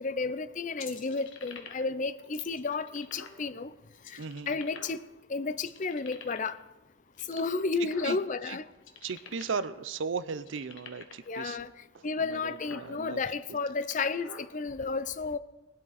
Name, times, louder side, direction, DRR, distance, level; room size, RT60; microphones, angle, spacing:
voice 1, 0.0-3.7 4.1-4.2 4.5-5.0 5.3-6.6 7.3-8.6 11.3-11.7 12.0-15.4, left 4 dB, 35° left, 15 dB, 0.5 m, -32 dB
sound 1, 0.8-2.0 2.3-3.4 3.9-5.2 5.6-6.6 7.1-8.4 8.7-9.7 10.0-10.1 10.4-11.3 11.9-12.0 12.4-12.9 13.5-14.4, left 5 dB, 65° left, 1.6 m, -47 dB
voice 2, 4.2-4.5 7.8-8.2 8.5-8.6 9.0-11.6 12.2-13.2, right 5 dB, 65° right, 15 dB, 0.6 m, -36 dB
19.5 x 12.5 x 4.1 m, 0.99 s
head